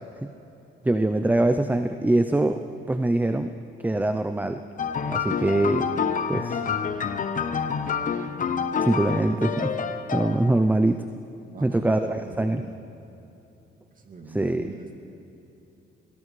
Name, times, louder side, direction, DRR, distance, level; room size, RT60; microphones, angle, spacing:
voice 1, 0.8-2.6 2.9-3.5 3.8-4.6 5.1-5.9 6.3-6.6 8.8-9.7 10.1-11.0 11.6-12.6 14.3-14.7, right 2 dB, 10° right, 8 dB, 0.5 m, -23 dB
sound 1, 4.8-10.6, left 6 dB, 40° left, 0.8 m, -28 dB
voice 2, 11.5-12.8 13.9-14.9, right 3 dB, 45° right, 2 dB, 2.1 m, -42 dB
23.0 x 17.5 x 3.2 m, 2.9 s
cardioid pair, 90°, 20 cm